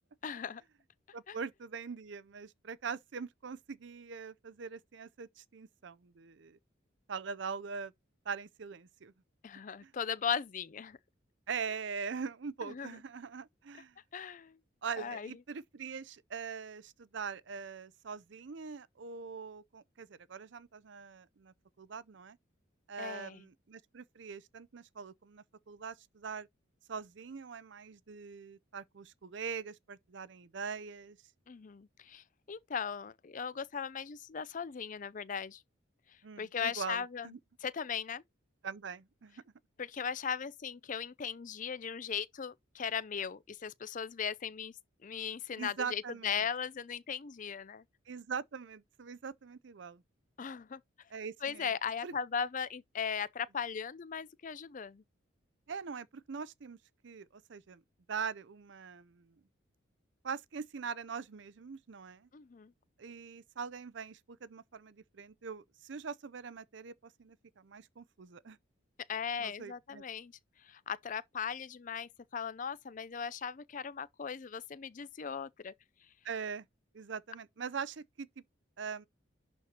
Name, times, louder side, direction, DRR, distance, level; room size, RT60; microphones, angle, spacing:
voice 1, 0.2-0.6 1.3-1.4 9.4-11.0 12.6-13.0 14.1-14.6 15.0-15.3 23.0-23.5 31.5-35.6 36.1-37.3 37.6-38.2 39.8-44.7 45.0-47.8 50.4-50.8 51.4-55.0 62.3-62.7 69.1-75.7, left 7 dB, 40° left, 0.4 m, -38 dB
voice 2, 1.1-6.6 7.1-7.9 8.3-9.1 9.8-9.9 11.5-14.0 14.8-22.4 22.9-26.5 26.9-31.2 36.2-37.4 38.6-39.4 45.6-46.4 48.1-50.0 51.1-51.7 52.0-52.1 55.7-56.8 57.0-57.8 58.1-59.3 60.2-62.3 63.0-68.6 69.4-70.0 76.2-76.7 76.9-78.3 78.8-79.1, right 6 dB, 60° right, 0.5 m, -42 dB
11.0 x 4.3 x 2.9 m
head